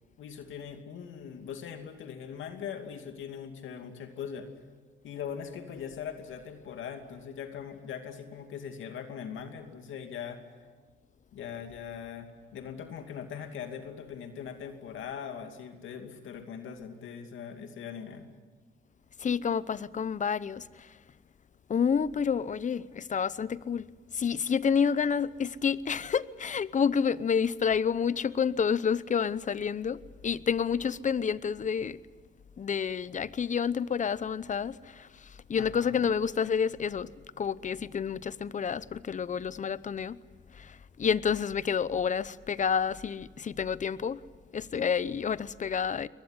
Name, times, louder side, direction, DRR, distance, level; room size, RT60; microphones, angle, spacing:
voice 1, 0.2-4.5 5.0-10.4 11.3-18.3 35.6-36.1, left 7 dB, 75° left, 2.6 m, -41 dB
voice 2, 19.2-20.6 21.7-23.8 24.1-32.0 32.6-35.1 35.5-37.1 37.4-40.2 40.6-44.2 44.5-46.1, left 7 dB, 40° left, 0.8 m, -29 dB
23.0 x 20.5 x 9.9 m
cardioid pair, 90°, 20 cm